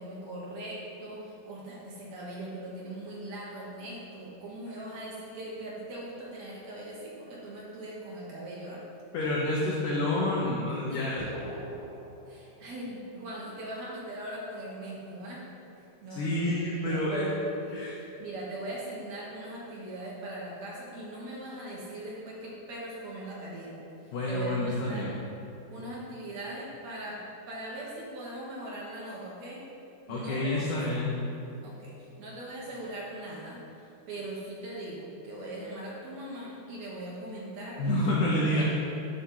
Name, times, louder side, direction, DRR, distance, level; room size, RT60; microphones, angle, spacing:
voice 1, 0.0-8.8 10.9-11.0 12.3-15.4 16.0-16.6 16.9-17.9 18.2-25.1 25.7-29.6 30.1-30.8 31.6-37.8 38.4-38.7, right 1 dB, 75° right, -5 dB, 1.5 m, -40 dB
voice 2, 9.1-11.3 16.1-17.3 17.7-18.0 24.1-25.1 30.1-31.2 37.8-38.7, left 1 dB, 85° left, -4 dB, 1.7 m, -28 dB
sound 1, 11.2-13.1, right 1 dB, 60° right, 2.7 m, -42 dB
10.5 x 3.9 x 5.6 m, 2.8 s
omnidirectional pair, 4.8 m